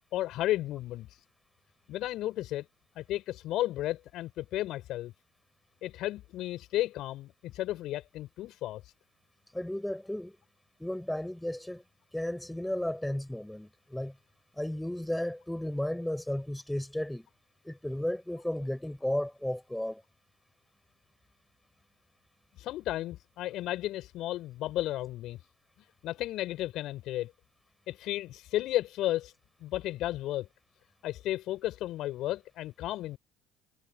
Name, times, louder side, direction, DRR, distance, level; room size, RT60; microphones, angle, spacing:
voice 1, 0.1-1.1 1.9-2.6 2.9-5.1 5.8-8.8 22.6-25.4 26.0-27.3 27.9-29.3 29.6-30.5 31.0-33.2, left 15 dB, 60° left, 6.6 m, -33 dB
voice 2, 9.5-10.4 10.8-11.8 12.1-14.1 14.6-17.3 17.6-20.0, left 1 dB, 5° left, 6.9 m, -34 dB
hypercardioid pair, 60°, 0 cm